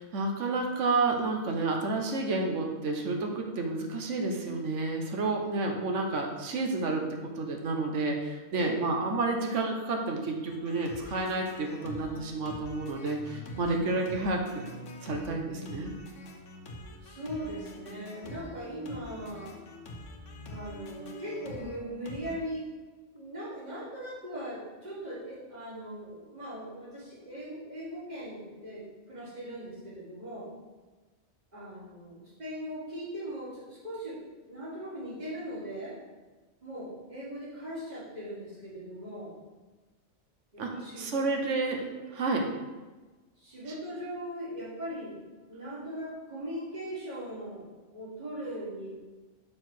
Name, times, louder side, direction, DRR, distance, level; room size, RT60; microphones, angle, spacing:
voice 1, 0.0-7.0 7.4-14.7 15.0-15.9 40.6-40.7 41.0-41.9 42.2-42.4, right 3 dB, 85° right, 2 dB, 1.3 m, -30 dB
voice 2, 8.5-8.8 17.0-19.6 20.4-22.7 23.1-30.5 31.5-36.0 36.6-39.3 40.5-41.3 43.4-48.9, equal, 35° right, -9 dB, 2.8 m, -39 dB
sound 1, 10.5-22.4, left 1 dB, 85° left, 1.2 m, -45 dB
6.1 x 4.6 x 6.1 m, 1.2 s
omnidirectional pair, 1.2 m